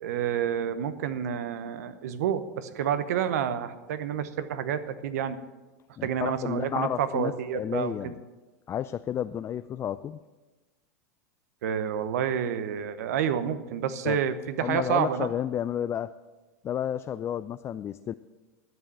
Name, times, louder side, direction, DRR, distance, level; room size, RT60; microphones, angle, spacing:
voice 1, 0.0-5.4 6.0-8.1 11.6-15.3, right 8 dB, 70° right, 12 dB, 0.9 m, -29 dB
voice 2, 6.0-8.1 8.7-10.2 14.0-14.2 14.6-16.1 16.6-18.1, left 10 dB, 30° left, 12 dB, 0.4 m, -31 dB
12.0 x 7.0 x 7.4 m, 1.2 s
hypercardioid pair, 95°, 9 cm